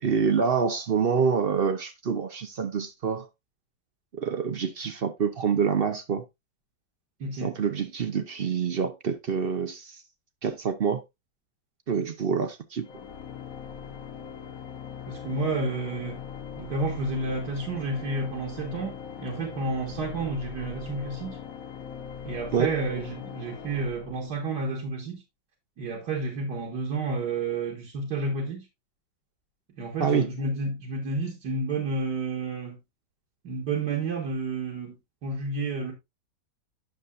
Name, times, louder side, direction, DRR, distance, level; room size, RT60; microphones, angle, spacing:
voice 1, 0.0-3.3 4.1-6.2 7.3-10.0 10.4-11.0 11.9-12.9 22.5-22.7 30.0-30.3, right 6 dB, 55° right, 0.6 m, -26 dB
voice 2, 7.2-7.6 15.1-16.2 16.6-21.4 22.2-25.2 25.8-28.7 29.8-32.8 33.4-35.9, right 3 dB, 70° right, 2.2 m, -30 dB
Organ, 12.8-24.7, left 7 dB, 55° left, 1.3 m, -40 dB
9.2 x 6.8 x 2.4 m
omnidirectional pair, 1.8 m